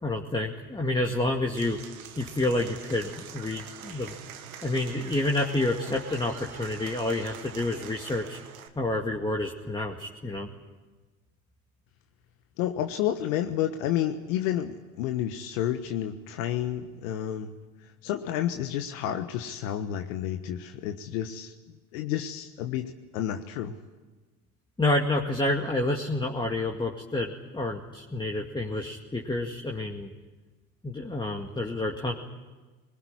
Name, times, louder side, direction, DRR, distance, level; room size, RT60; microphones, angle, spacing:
voice 1, 0.0-1.8 2.2-4.1 4.6-8.4 8.8-10.5 24.8-30.1 30.8-32.1, left 2 dB, 10° left, 0 dB, 2.3 m, -29 dB
Applause / Crowd, 1.5-8.7, right 8 dB, 90° right, 1.7 m, -44 dB
voice 2, 12.6-17.5 18.0-23.7, left 11 dB, 70° left, 6 dB, 1.4 m, -30 dB
21.0 x 20.0 x 9.9 m, 1.2 s
hypercardioid pair, 75°, 41 cm